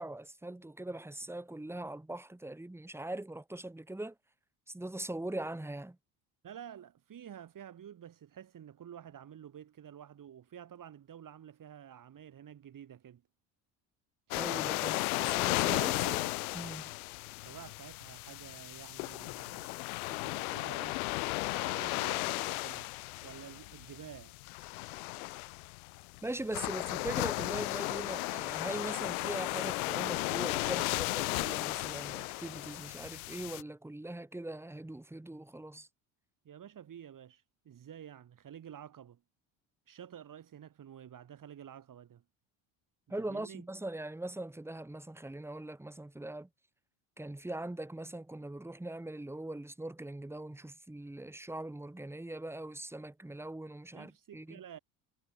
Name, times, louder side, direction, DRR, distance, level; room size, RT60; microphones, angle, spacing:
voice 1, 0.0-4.1 4.7-6.0 14.4-16.2 16.5-16.9 26.2-35.9 43.1-46.5 47.2-54.6, right 1 dB, 5° right, 1.6 m, -41 dB
voice 2, 6.4-13.2 14.6-15.0 15.3-16.3 17.4-21.0 21.5-22.9 23.2-24.3 26.7-26.8 36.5-39.2 39.9-42.2 43.3-43.7 53.9-54.8, right 9 dB, 50° right, 6.9 m, -50 dB
sound 1, 14.3-33.6, left 26 dB, 90° left, 0.9 m, -35 dB
supercardioid pair, 80°, 42 cm